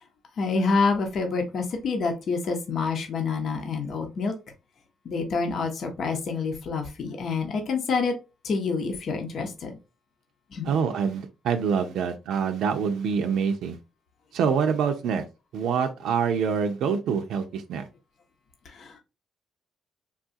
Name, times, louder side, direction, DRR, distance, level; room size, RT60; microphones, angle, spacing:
voice 1, 0.4-4.3 5.0-8.1 8.4-9.8 10.5-10.7 18.6-19.0, left 4 dB, 60° left, 0.8 m, -27 dB
voice 2, 10.6-13.8 14.3-15.2 15.5-17.9, right 6 dB, 80° right, 0.5 m, -26 dB
3.6 x 2.4 x 2.6 m
cardioid pair, 90°, 0 cm